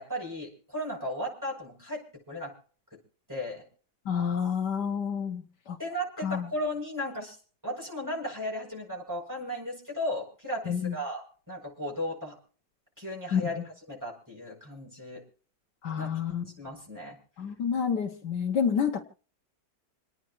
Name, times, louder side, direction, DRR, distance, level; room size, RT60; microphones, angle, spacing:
voice 1, 0.0-2.5 3.3-3.6 5.8-7.4 7.6-12.3 13.0-13.6 13.9-15.2 16.0-16.1 16.6-17.2, equal, 10° right, -3 dB, 7.9 m, -35 dB
voice 2, 4.1-5.8 6.2-6.5 10.7-11.0 13.3-13.5 15.8-16.4 17.4-19.0, left 7 dB, 70° left, 3 dB, 1.9 m, -29 dB
29.0 x 9.8 x 3.2 m, 0.42 s
omnidirectional pair, 1.9 m